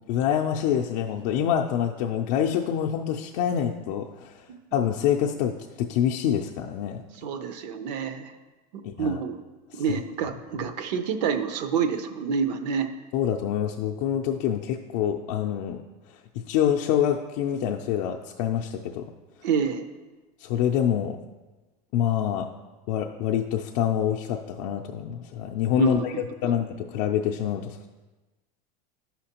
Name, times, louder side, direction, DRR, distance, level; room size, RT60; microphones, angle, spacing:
voice 1, 0.1-4.4 4.7-7.0 8.8-9.2 9.7-9.8 13.1-15.8 16.3-19.1 20.4-21.2 21.9-22.5 22.9-27.9, left 9 dB, 60° left, 1 dB, 0.4 m, -26 dB
voice 2, 7.2-8.3 8.7-9.4 9.7-12.9 19.4-19.8 25.8-26.6, right 6 dB, 80° right, 9 dB, 0.7 m, -28 dB
10.0 x 5.7 x 2.9 m, 1.2 s
supercardioid pair, 155°, 21 cm